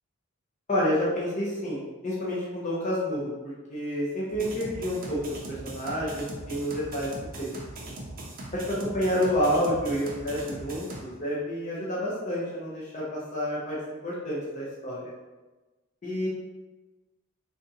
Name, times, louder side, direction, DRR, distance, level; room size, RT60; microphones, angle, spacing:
voice 1, 0.7-7.5 8.5-13.8 14.0-15.1 16.0-16.3, equal, 35° left, -7 dB, 0.8 m, -29 dB
sound 1, 4.3-11.0, right 1 dB, 45° right, 0.6 m, -40 dB
3.5 x 2.7 x 2.8 m, 1.2 s
head